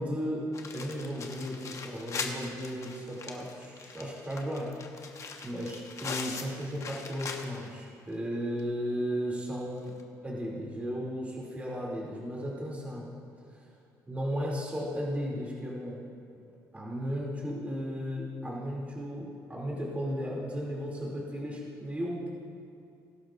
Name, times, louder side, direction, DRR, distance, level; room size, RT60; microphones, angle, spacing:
voice 1, 0.0-4.7 5.4-10.0 10.2-13.1 13.5-13.7 14.1-16.0 16.7-22.3, equal, 20° right, -4 dB, 2.7 m, -35 dB
sound 1, 0.5-7.8 8.1-8.2 8.6-8.7 9.9-10.0, left 4 dB, 45° left, 1.2 m, -41 dB
20.5 x 11.5 x 2.5 m, 2.5 s
cardioid pair, 85°, 7 cm